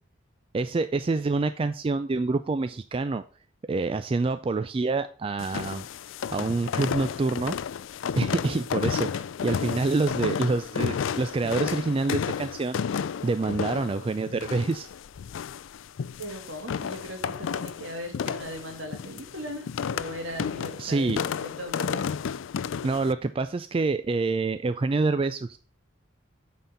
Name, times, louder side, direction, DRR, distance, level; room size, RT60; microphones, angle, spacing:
voice 1, 0.5-3.2 3.7-5.9 6.3-7.6 8.2-12.8 13.2-14.9 20.8-21.2 22.8-25.6, right 3 dB, 30° right, 11 dB, 0.3 m, -27 dB
sound 1, 5.4-23.1, left 7 dB, 75° left, 0.4 m, -32 dB
voice 2, 16.2-22.1, equal, 70° right, 3 dB, 2.3 m, -39 dB
9.3 x 4.2 x 5.1 m, 0.39 s
head